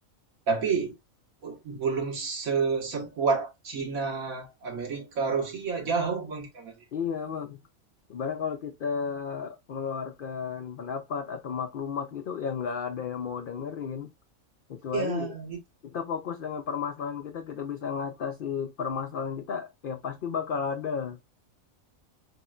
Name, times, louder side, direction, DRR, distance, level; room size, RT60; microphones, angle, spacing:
voice 1, 0.5-0.9 1.4-6.7 14.9-15.6, right 5 dB, 80° right, 1.7 m, -29 dB
voice 2, 6.9-7.6 8.1-14.1 14.7-15.3 15.8-21.2, left 6 dB, 65° left, 0.5 m, -33 dB
4.2 x 3.6 x 2.3 m
omnidirectional pair, 1.4 m